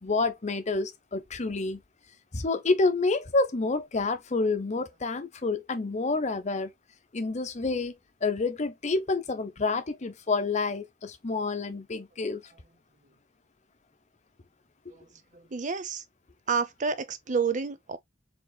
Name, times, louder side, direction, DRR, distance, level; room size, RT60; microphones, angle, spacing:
voice 1, 0.0-1.8 2.3-6.7 7.1-7.9 8.2-12.4, left 3 dB, 40° left, 0.7 m, -28 dB
voice 2, 15.3-16.0 16.5-18.0, right 5 dB, 40° right, 0.6 m, -29 dB
4.8 x 3.7 x 2.2 m
head